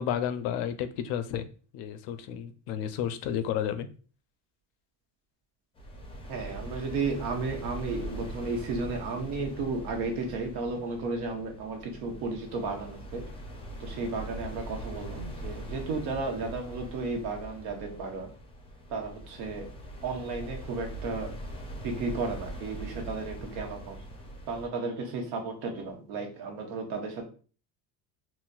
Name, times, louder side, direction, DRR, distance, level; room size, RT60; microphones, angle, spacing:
voice 1, 0.0-1.4 1.7-3.9, left 9 dB, 80° left, 10 dB, 0.5 m, -31 dB
sound 1, 5.8-24.7, right 1 dB, 15° left, 0.4 m, -42 dB
voice 2, 6.3-13.2 13.8-18.3 18.9-19.7 20.0-21.3 21.8-24.0 24.5-27.2, right 3 dB, 90° right, 3 dB, 1.0 m, -33 dB
4.0 x 2.1 x 2.4 m, 0.39 s
cardioid pair, 145°, 40 cm